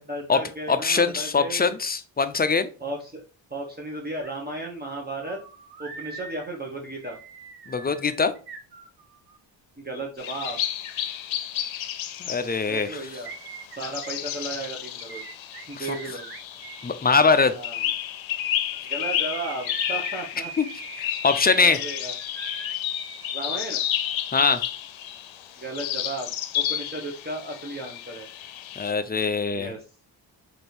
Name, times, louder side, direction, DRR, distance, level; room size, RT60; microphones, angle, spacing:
voice 1, 0.1-1.7 2.8-3.2 3.5-5.4 5.8-7.2 9.8-10.6 12.7-13.3 13.7-15.2 15.6-16.3 17.5-17.8 18.9-20.5 21.5-22.1 23.3-23.8 25.6-28.3 29.5-29.8, right 2 dB, 20° right, -2 dB, 0.9 m, -34 dB
voice 2, 0.7-2.7 7.7-8.3 12.2-13.0 15.8-15.9 16.8-17.5 20.6-20.7 21.0-21.8 24.3-24.6 28.8-29.7, left 4 dB, 25° left, 11 dB, 0.3 m, -22 dB
sound 1, 4.2-4.3 4.6-9.4 12.7-16.9 18.7-23.3 23.6-23.7, right 5 dB, 55° right, 0.8 m, -42 dB
sound 2, 10.2-28.9, left 11 dB, 90° left, 0.6 m, -31 dB
3.3 x 2.6 x 4.3 m, 0.36 s
cardioid pair, 85°, 45 cm